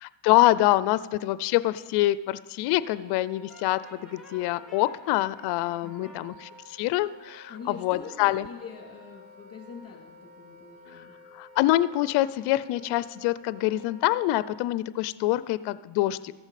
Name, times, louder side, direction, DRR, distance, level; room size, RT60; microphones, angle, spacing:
voice 1, 0.0-8.5 11.3-16.3, left 16 dB, 60° left, 17 dB, 0.5 m, -25 dB
Wind instrument woodwind instrument, 2.7-14.6, left 1 dB, 80° right, 2.0 m, -52 dB
Brass instrument, 3.5-6.2, left 2 dB, ahead, 2.3 m, -52 dB
voice 2, 5.8-6.1 7.5-11.2, left 5 dB, 30° left, 1 dB, 2.8 m, -44 dB
14.5 x 6.9 x 4.1 m, 1.3 s
supercardioid pair, 100°, 46 cm